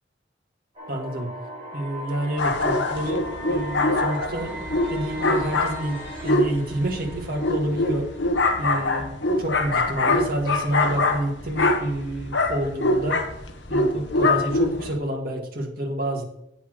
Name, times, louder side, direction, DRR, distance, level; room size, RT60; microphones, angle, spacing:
sound 1, 0.7-8.7, right 1 dB, 30° right, 4.4 m, -38 dB
voice 1, 0.9-1.3 1.7-8.1 8.6-13.2 13.7-16.2, right 1 dB, 55° right, 0 dB, 2.0 m, -29 dB
sound 2, 2.4-15.0, left 2 dB, 80° left, 1.2 m, -24 dB
8.6 x 5.9 x 6.3 m, 0.77 s
head